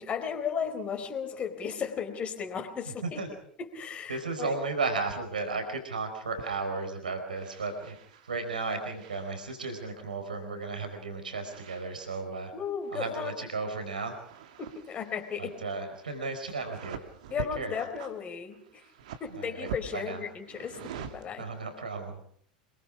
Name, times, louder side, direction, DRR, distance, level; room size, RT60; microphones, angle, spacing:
voice 1, 0.0-3.2 3.6-4.5 12.5-13.3 14.6-15.6 17.3-18.8 19.2-21.5, left 7 dB, 30° left, 6 dB, 4.1 m, -35 dB
voice 2, 2.9-3.3 4.1-8.0 8.2-12.5 12.9-14.2 15.4-17.0 17.4-17.7 19.4-20.2 21.4-22.2, right 3 dB, 75° right, 6 dB, 4.5 m, -34 dB
sound 1, 5.0-5.2 5.5-6.0 6.4-7.0 7.3-10.0 11.3-12.3 12.7-13.7 13.9-21.7, right 8 dB, 60° right, 2.2 m, -46 dB
27.0 x 23.0 x 4.9 m, 0.62 s
figure-of-eight pair, 80°, 5 cm